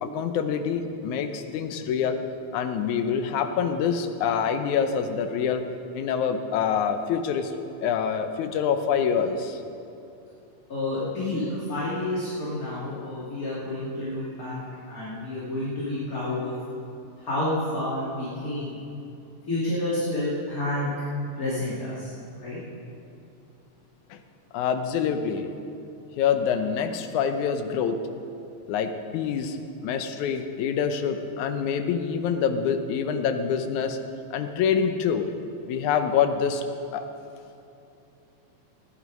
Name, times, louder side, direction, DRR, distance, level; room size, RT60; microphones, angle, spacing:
voice 1, 0.0-2.2 2.5-5.6 5.9-7.5 7.8-9.6 24.1-24.2 24.5-25.5 26.2-28.0 28.7-29.6 29.8-34.0 34.3-35.3 35.7-36.6 36.9-37.1, left 7 dB, 75° left, 7 dB, 2.1 m, -26 dB
voice 2, 10.7-16.5 17.2-18.8 19.5-20.9 21.3-22.6, left 1 dB, 30° left, -9 dB, 2.8 m, -29 dB
17.5 x 11.0 x 5.3 m, 2.7 s
omnidirectional pair, 3.8 m